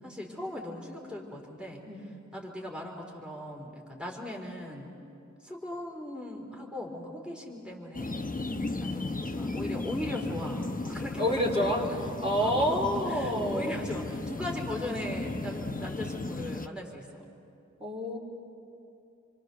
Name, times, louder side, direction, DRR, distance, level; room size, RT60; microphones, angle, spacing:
voice 1, 0.0-4.9 5.4-8.3 8.8-12.0 12.4-12.8 13.1-17.2, left 1 dB, 5° right, -1 dB, 3.8 m, -39 dB
sound 1, 7.9-16.7, left 2 dB, 30° left, 0.8 m, -35 dB
voice 2, 11.2-11.9 12.2-13.8 17.8-18.2, equal, 20° right, -4 dB, 3.7 m, -28 dB
27.5 x 24.5 x 6.8 m, 2.6 s
wide cardioid pair, 55°, 29 cm